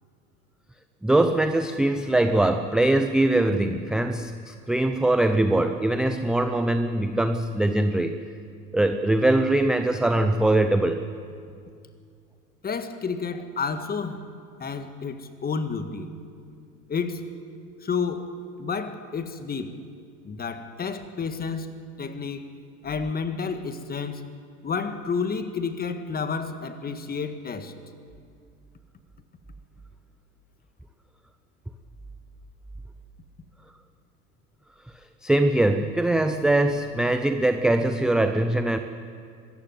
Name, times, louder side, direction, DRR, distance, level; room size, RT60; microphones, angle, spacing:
voice 1, 1.0-8.2 8.7-11.0 35.2-38.8, right 1 dB, ahead, 7 dB, 0.4 m, -22 dB
voice 2, 12.6-14.2 14.6-16.1 16.9-17.2 17.8-18.3 18.6-19.7 20.2-22.5 22.8-24.2 24.6-27.7, left 5 dB, 20° left, 9 dB, 1.7 m, -30 dB
24.0 x 15.0 x 9.7 m, 2.3 s
hypercardioid pair, 95°, 48 cm